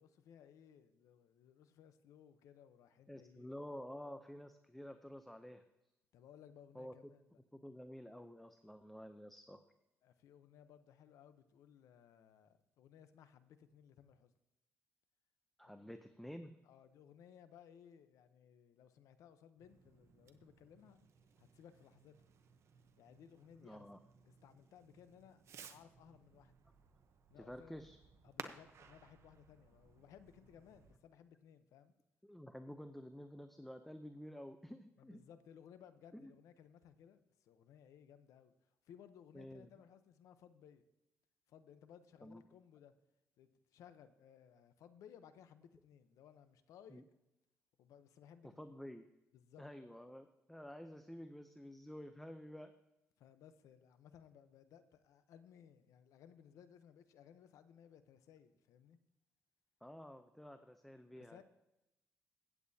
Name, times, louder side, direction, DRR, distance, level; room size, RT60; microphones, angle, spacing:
voice 1, 0.0-3.5 6.1-7.2 10.0-14.3 15.6-15.9 16.6-21.1 21.4-22.1 23.0-23.9 24.2-25.4 25.7-26.5 27.3-27.8 28.2-31.9 35.0-40.8 41.5-42.9 43.4-47.0 47.8-48.7 49.3-49.6 53.2-59.0 61.2-61.4, left 8 dB, 80° left, 11 dB, 0.8 m, -61 dB
voice 2, 3.1-5.6 6.7-6.9 7.5-9.6 15.6-16.6 23.6-24.0 27.3-28.0 32.2-35.2 36.1-36.3 39.3-39.7 42.2-42.4 46.9-47.0 48.4-49.1 49.6-52.7 59.8-61.4, equal, 5° left, 8 dB, 0.6 m, -51 dB
Fireworks, 19.6-31.0, right 6 dB, 60° right, 0.9 m, -58 dB
15.5 x 8.4 x 2.8 m, 0.93 s
cardioid pair, 100°, 5 cm